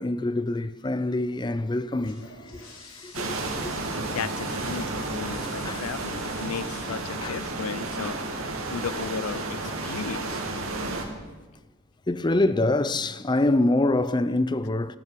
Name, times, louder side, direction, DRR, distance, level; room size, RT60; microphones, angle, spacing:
voice 1, 0.0-3.7 5.6-5.8 7.2-7.4 12.1-15.0, left 2 dB, 20° left, 0.5 m, -26 dB
Toilet flush, 1.8-11.2, left 2 dB, 65° left, 3.3 m, -50 dB
sound 1, 3.1-11.0, right 2 dB, 75° right, 2.3 m, -32 dB
voice 2, 4.0-8.2 8.7-10.4, left 6 dB, 85° left, 0.5 m, -35 dB
14.0 x 13.5 x 6.8 m
head